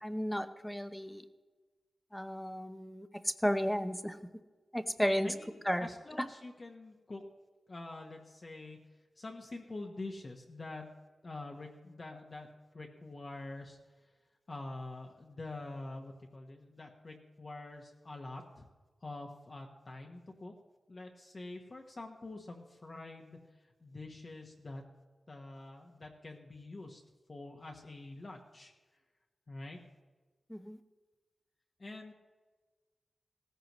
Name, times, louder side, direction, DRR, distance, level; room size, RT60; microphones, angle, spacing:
voice 1, 0.0-1.2 2.1-4.2 4.7-5.3 5.7-5.9 6.2-6.3 30.5-30.8, equal, 5° left, 10 dB, 0.7 m, -33 dB
voice 2, 5.2-5.5 5.8-7.2 7.7-8.8 9.2-10.8 11.2-12.5 12.7-13.8 14.5-18.6 19.0-20.5 20.9-23.4 23.8-24.8 25.3-27.0 27.3-28.7 29.5-29.8 31.8-32.1, left 2 dB, 35° left, 1 dB, 1.0 m, -46 dB
18.0 x 14.5 x 3.0 m, 1.3 s
wide cardioid pair, 160°, 0 cm